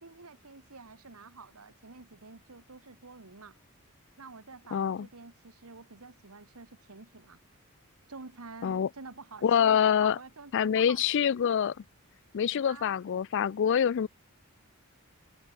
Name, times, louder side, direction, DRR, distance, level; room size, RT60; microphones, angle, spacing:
voice 1, 0.0-3.6 4.2-7.4 8.1-11.3 12.6-13.0, right 4 dB, 80° right, 1.6 m, -49 dB
voice 2, 4.7-5.1 8.6-8.9 9.4-10.2 10.5-11.7 12.3-14.1, left 8 dB, 55° left, 0.4 m, -25 dB
head